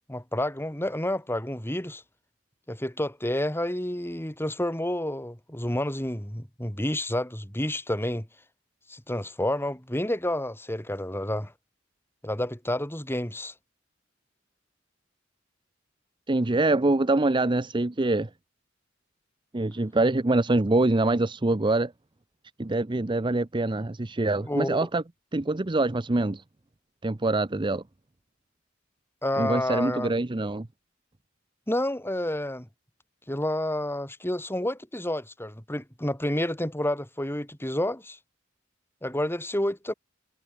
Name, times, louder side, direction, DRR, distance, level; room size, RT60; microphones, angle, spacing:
voice 1, 0.1-2.0 2.7-8.3 8.9-11.5 12.2-13.5 24.5-24.9 29.2-30.1 31.7-32.7 33.3-38.2 39.0-39.9, left 1 dB, 10° left, 4.2 m, -29 dB
voice 2, 16.3-18.3 19.5-21.9 22.6-25.0 25.3-26.4 27.0-27.8 29.4-30.7, right 2 dB, 25° right, 0.7 m, -24 dB
head